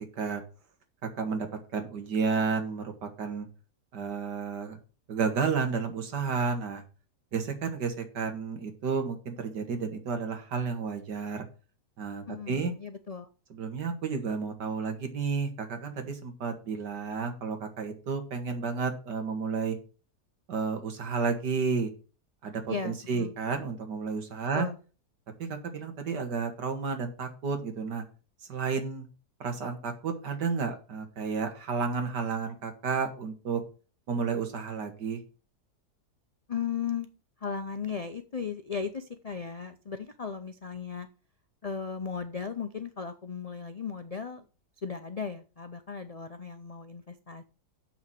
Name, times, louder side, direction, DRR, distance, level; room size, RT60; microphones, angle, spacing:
voice 1, 1.0-1.5 1.7-3.5 3.9-4.8 5.1-6.8 7.3-11.4 12.0-12.7 13.5-19.8 20.5-21.9 22.4-24.7 25.4-28.0 28.5-29.0 29.4-33.6 34.1-35.2, right 5 dB, 85° right, 6 dB, 2.3 m, -31 dB
voice 2, 12.3-13.3 22.7-23.3 24.5-24.8 36.5-37.1 37.4-41.1 41.6-44.4 44.8-47.4, left 6 dB, 80° left, 8 dB, 0.3 m, -36 dB
7.2 x 6.0 x 7.4 m, 0.36 s
omnidirectional pair, 1.8 m